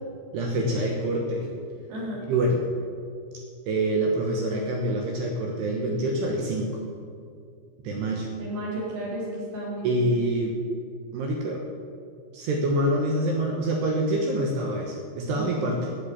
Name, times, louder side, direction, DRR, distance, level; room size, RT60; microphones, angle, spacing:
voice 1, 0.3-1.5 2.3-2.6 3.7-6.8 7.8-8.3 9.8-10.6 11.1-11.6 12.3-15.9, right 1 dB, 70° right, 0 dB, 3.0 m, -26 dB
voice 2, 1.9-2.2 8.4-10.1 15.4-15.8, equal, 55° right, -5 dB, 5.6 m, -33 dB
12.5 x 8.6 x 8.6 m, 2.3 s
omnidirectional pair, 5.6 m